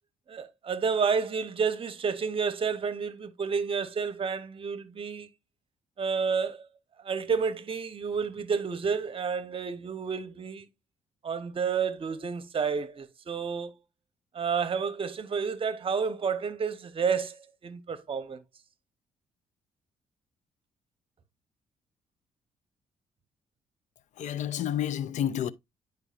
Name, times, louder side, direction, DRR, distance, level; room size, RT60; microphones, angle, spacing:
voice 1, 0.3-5.3 6.0-6.6 7.0-10.7 11.2-13.7 14.3-18.4, right 6 dB, 45° right, 0.9 m, -30 dB
voice 2, 24.2-25.5, left 10 dB, 65° left, 0.5 m, -30 dB
9.9 x 4.6 x 2.4 m
cardioid pair, 80°, 13 cm